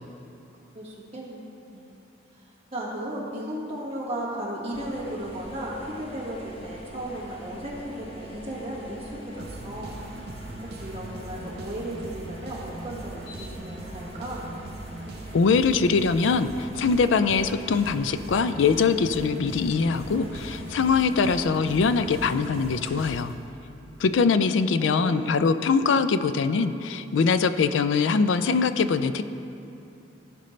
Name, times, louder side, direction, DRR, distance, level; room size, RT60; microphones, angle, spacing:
voice 1, 0.7-1.9 2.7-10.0 10.6-14.5 24.8-25.3, right 1 dB, 35° right, -5 dB, 1.7 m, -35 dB
sound 1, 4.7-23.0, left 1 dB, 30° left, 0.9 m, -43 dB
sound 2, 9.4-24.0, right 2 dB, 55° right, 0.6 m, -41 dB
voice 2, 15.3-23.3 24.0-29.2, left 5 dB, 80° left, 12 dB, 0.4 m, -22 dB
15.0 x 5.3 x 3.2 m, 2.9 s
head